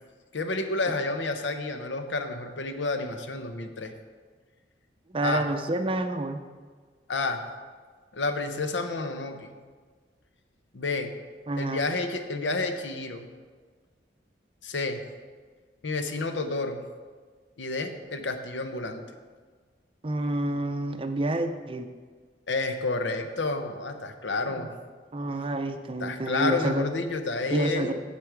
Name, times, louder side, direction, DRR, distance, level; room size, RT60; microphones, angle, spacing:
voice 1, 0.3-3.9 5.2-5.4 7.1-7.4 8.1-9.5 10.7-11.1 11.6-13.2 14.6-15.0 15.8-16.8 17.6-19.0 22.5-24.7 26.0-27.9, left 3 dB, 80° left, 7 dB, 0.8 m, -30 dB
voice 2, 5.1-6.4 11.5-11.9 20.0-21.9 24.5-24.7 25.1-26.9 27.5-27.9, right 2 dB, 30° right, 7 dB, 0.5 m, -29 dB
8.4 x 7.6 x 4.6 m, 1.5 s
head